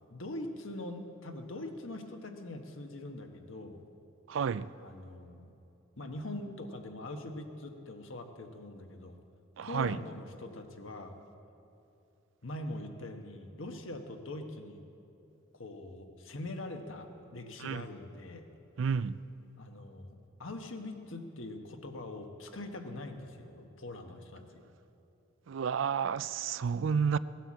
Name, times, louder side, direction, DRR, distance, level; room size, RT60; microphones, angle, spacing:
voice 1, 0.1-3.8 4.8-5.5 6.0-9.2 9.6-11.2 12.4-14.8 15.5-18.5 19.6-24.6, left 1 dB, 75° left, 1.3 m, -43 dB
voice 2, 4.3-4.7 9.6-10.0 17.6-17.8 18.8-19.1 25.5-27.2, right 6 dB, 65° right, 0.4 m, -30 dB
17.5 x 9.0 x 7.5 m
head